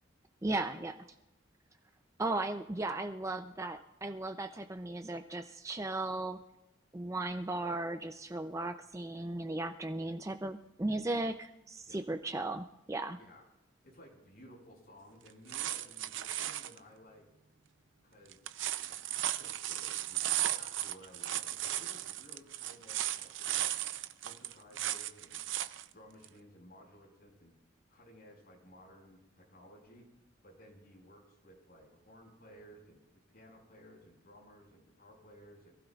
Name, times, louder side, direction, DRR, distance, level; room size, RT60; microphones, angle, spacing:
voice 1, 0.4-0.9 2.2-6.4 6.9-13.2, right 2 dB, 15° right, 7 dB, 0.4 m, -36 dB
voice 2, 13.2-13.5 13.8-17.3 18.0-18.4 18.9-23.7 24.1-25.4 25.9-27.5 27.9-30.1 30.4-33.0 33.3-35.8, equal, 50° left, -1 dB, 5.5 m, -57 dB
sound 1, 15.3-16.8 18.3-25.8 26.2-26.3, right 12 dB, 70° right, 0.5 m, -36 dB
26.5 x 15.5 x 2.4 m, 0.95 s
head